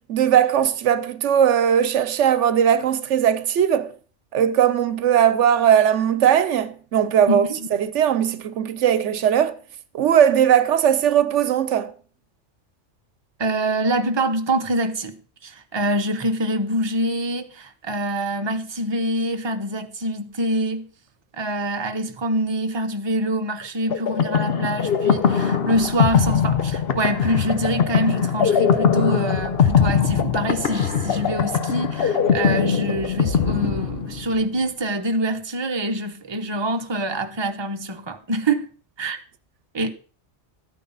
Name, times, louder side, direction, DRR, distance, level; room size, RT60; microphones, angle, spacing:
voice 1, 0.1-3.9 4.3-7.4 7.8-9.6 9.9-11.9, right 9 dB, 85° right, 1.0 m, -19 dB
voice 2, 7.3-7.7 13.4-20.9 21.3-38.6 39.0-39.2 39.7-39.9, right 1 dB, 25° right, 0.9 m, -25 dB
sound 1, 23.9-34.4, left 7 dB, 55° left, 1.0 m, -21 dB
13.0 x 9.3 x 4.0 m
omnidirectional pair, 1.2 m